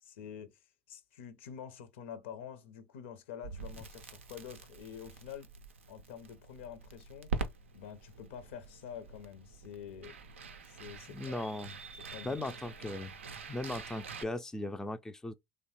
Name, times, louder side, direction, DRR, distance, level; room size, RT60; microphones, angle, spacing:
voice 1, 0.0-0.5 0.9-5.5 5.9-7.3 7.7-10.2 10.6-11.4 12.1-12.4, left 8 dB, 75° left, 0.6 m, -47 dB
Crackle, 3.4-14.2, right 4 dB, 85° right, 0.4 m, -44 dB
voice 2, 11.1-11.7 12.2-13.1 13.5-15.3, left 2 dB, 10° left, 0.3 m, -38 dB
3.1 x 2.1 x 2.8 m
hypercardioid pair, 75°, 7 cm